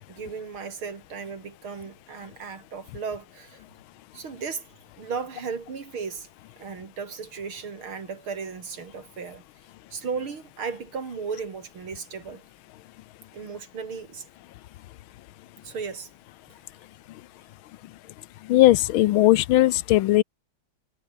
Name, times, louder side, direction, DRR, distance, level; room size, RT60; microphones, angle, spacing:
voice 1, 0.1-3.6 4.1-4.6 5.0-6.3 6.6-9.4 9.9-12.4 13.3-14.3 15.6-16.1, right 5 dB, 90° right, 3.9 m, -35 dB
voice 2, 18.4-20.2, left 15 dB, 85° left, 1.5 m, -18 dB
omnidirectional pair, 2.2 m